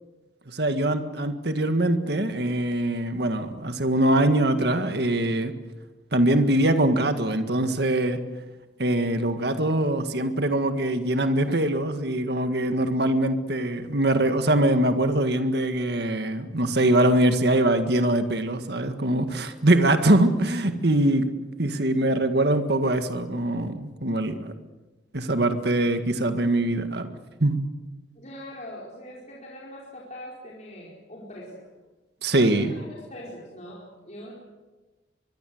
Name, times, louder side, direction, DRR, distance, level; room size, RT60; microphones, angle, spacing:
voice 1, 0.5-5.5 6.1-8.2 8.8-21.3 21.6-24.5 25.1-27.1 27.4-27.6 32.2-32.7, right 1 dB, 60° right, 8 dB, 1.8 m, -23 dB
voice 2, 28.1-31.7 32.3-34.3, left 1 dB, 40° left, -4 dB, 4.8 m, -42 dB
24.0 x 23.0 x 7.9 m, 1.2 s
head